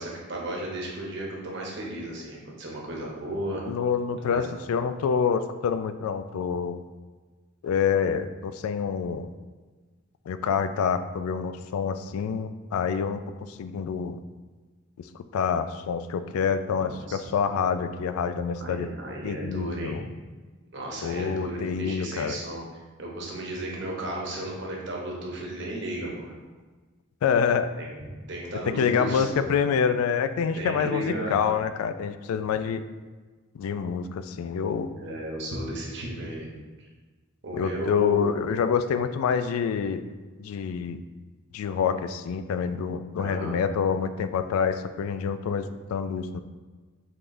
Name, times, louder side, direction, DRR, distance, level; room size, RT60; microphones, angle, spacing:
voice 1, 0.0-3.6 4.3-4.4 16.7-17.3 18.6-20.0 20.7-26.3 27.8-27.9 28.3-29.5 30.5-31.6 35.0-36.5 36.8-36.9 37.4-38.4 43.2-43.6, right 1 dB, 55° right, -2 dB, 0.9 m, -34 dB
voice 2, 3.7-6.8 7.6-9.3 10.3-13.2 13.5-14.2 15.3-18.9 19.2-20.0 21.0-22.4 27.2-27.7 28.8-32.8 33.5-34.9 37.5-40.0 40.4-41.0 41.5-46.4, left 6 dB, 85° left, 13 dB, 0.3 m, -27 dB
5.7 x 3.4 x 2.6 m, 1.3 s
head